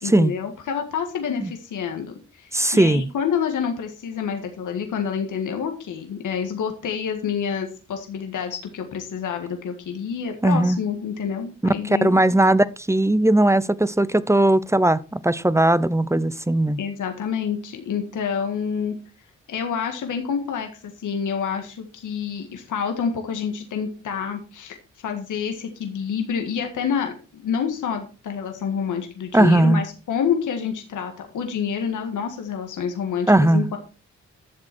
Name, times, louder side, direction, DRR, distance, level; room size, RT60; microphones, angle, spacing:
voice 1, 0.0-12.2 16.8-18.9 19.5-20.7 21.0-24.8 25.0-33.8, left 7 dB, 85° left, 1.8 m, -28 dB
voice 2, 2.5-3.1 10.4-10.8 12.0-16.8 29.3-29.8 33.3-33.7, right 1 dB, 10° right, 0.7 m, -18 dB
12.0 x 7.2 x 4.5 m
supercardioid pair, 50°, 30 cm